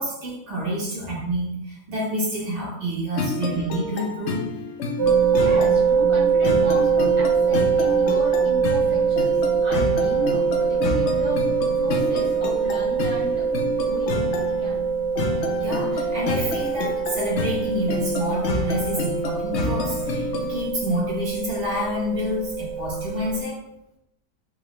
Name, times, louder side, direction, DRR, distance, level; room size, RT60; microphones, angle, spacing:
voice 1, 0.0-4.4 15.6-23.6, equal, 45° right, -5 dB, 1.4 m, -28 dB
sound 1, 3.2-20.6, left 3 dB, 90° left, 0.6 m, -29 dB
sound 2, 5.0-23.4, right 6 dB, 85° right, 1.3 m, -23 dB
voice 2, 5.3-14.8, right 1 dB, 30° left, -8 dB, 0.6 m, -34 dB
3.8 x 2.8 x 3.0 m, 0.83 s
omnidirectional pair, 1.7 m